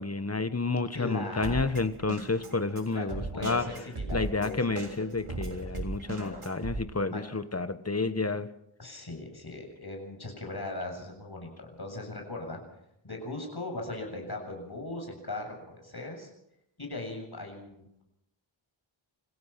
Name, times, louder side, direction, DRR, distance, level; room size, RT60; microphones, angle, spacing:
voice 1, 0.0-3.7 4.1-8.5, left 3 dB, 30° left, 12 dB, 1.3 m, -30 dB
voice 2, 0.9-1.8 2.9-4.8 6.2-6.4 7.1-7.2 8.8-12.6 13.0-16.3 16.8-18.0, left 2 dB, 50° left, 2 dB, 7.5 m, -39 dB
Drum kit, 1.4-6.8, right 3 dB, 80° right, 3.6 m, -37 dB
26.5 x 16.5 x 5.9 m, 0.80 s
wide cardioid pair, 70°, 49 cm